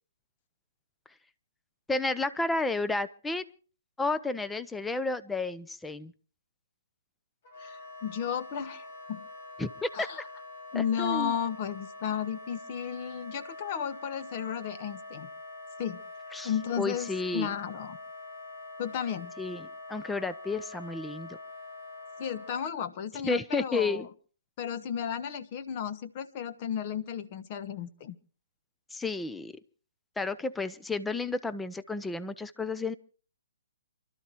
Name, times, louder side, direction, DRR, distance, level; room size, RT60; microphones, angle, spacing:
voice 1, 1.9-3.4 4.0-6.1 9.6-10.1 10.7-11.4 16.3-16.5 16.8-17.5 19.4-21.4 23.2-24.1 28.9-29.5 30.2-32.9, left 3 dB, 5° left, 14 dB, 0.7 m, -31 dB
Wind instrument woodwind instrument, 7.4-22.7, left 2 dB, 55° left, 4.4 m, -45 dB
voice 2, 7.6-9.2 9.9-10.2 10.7-15.3 15.8-16.0 16.4-18.0 18.8-19.3 22.2-24.0 24.6-28.1, left 8 dB, 40° left, 13 dB, 1.2 m, -34 dB
28.5 x 12.5 x 3.0 m, 0.39 s
hypercardioid pair, 140°, 0 cm